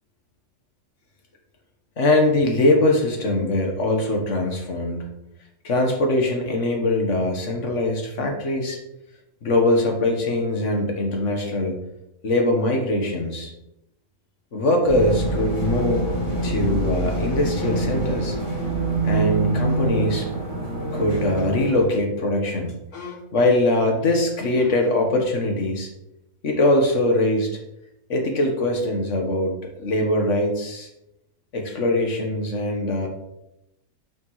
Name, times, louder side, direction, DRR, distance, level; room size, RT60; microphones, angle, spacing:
voice 1, 2.0-5.1 5.6-8.8 9.4-11.8 12.2-13.5 14.5-16.1 16.4-18.4 19.0-20.3 20.9-25.9 26.4-27.6 28.1-30.9 31.5-33.1, left 1 dB, 55° left, 2 dB, 1.6 m, -22 dB
sound 1, 14.9-21.8, right 2 dB, 25° left, 2.5 m, -25 dB
9.5 x 5.3 x 3.1 m, 0.87 s
omnidirectional pair, 1.5 m